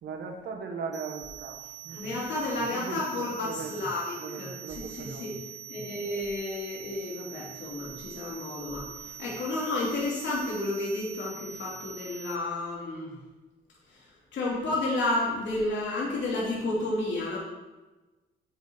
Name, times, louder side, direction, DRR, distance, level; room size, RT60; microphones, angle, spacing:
voice 1, 0.0-2.2 2.7-3.9 4.2-5.2 9.0-9.2, right 5 dB, 65° right, 3 dB, 1.8 m, -39 dB
sound 1, 0.9-12.3, right 9 dB, 20° right, 2.4 m, -44 dB
voice 2, 1.9-13.1 13.9-14.1 14.3-17.4, left 2 dB, 65° left, -5 dB, 3.0 m, -31 dB
8.4 x 8.0 x 4.7 m, 1.1 s
cardioid pair, 90°, 20 cm